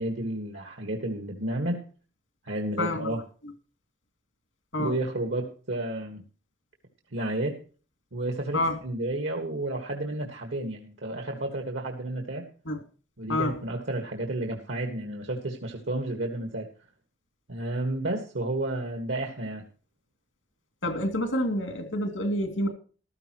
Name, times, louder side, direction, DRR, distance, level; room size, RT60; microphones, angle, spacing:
voice 1, 0.0-1.8 2.4-3.2 4.8-6.2 7.1-7.6 8.1-12.4 13.2-16.7 17.5-19.6, right 1 dB, 70° right, 3 dB, 1.6 m, -31 dB
voice 2, 2.8-3.1 4.7-4.9 8.5-8.8 12.7-12.8 13.3-13.6 20.8-22.7, left 1 dB, 85° left, 5 dB, 2.5 m, -28 dB
14.5 x 13.0 x 3.1 m, 0.38 s
head